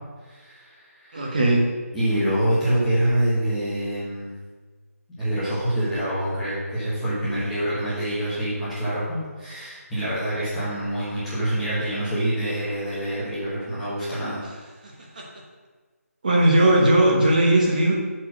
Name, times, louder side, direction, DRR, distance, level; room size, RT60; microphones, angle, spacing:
voice 1, 0.3-1.3 1.9-4.3 5.1-14.4, right 1 dB, 5° left, -12 dB, 1.1 m, -26 dB
voice 2, 1.1-1.7 14.8-15.3 16.2-18.0, right 1 dB, 30° right, -2 dB, 1.0 m, -18 dB
6.6 x 4.6 x 6.0 m, 1.4 s
figure-of-eight pair, 175°, 8 cm